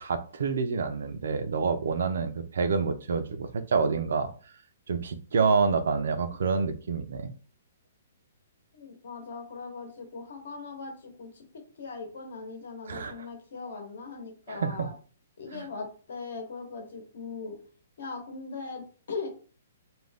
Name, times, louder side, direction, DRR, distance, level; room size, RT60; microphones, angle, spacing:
voice 1, 0.0-4.3 4.9-7.3 12.9-13.2 14.5-14.9 15.5-15.7, right 5 dB, 65° right, 9 dB, 0.4 m, -28 dB
voice 2, 8.7-11.4 11.8-14.9 15.4-17.6 18.0-19.3, left 4 dB, 65° left, 3 dB, 0.9 m, -39 dB
2.5 x 2.2 x 3.3 m, 0.39 s
hypercardioid pair, 180°, 0 cm